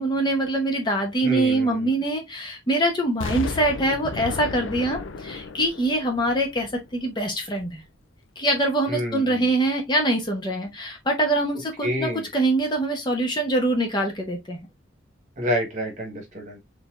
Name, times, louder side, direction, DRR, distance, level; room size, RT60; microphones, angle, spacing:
voice 1, 0.0-7.8 8.4-14.6, right 1 dB, 25° left, 0.9 m, -24 dB
voice 2, 1.2-1.9 8.9-9.5 11.8-12.3 15.4-16.6, equal, 40° right, 1.3 m, -28 dB
Explosion, 3.2-7.1 7.6-7.7, left 4 dB, 75° left, 0.5 m, -34 dB
4.1 x 3.4 x 2.5 m
head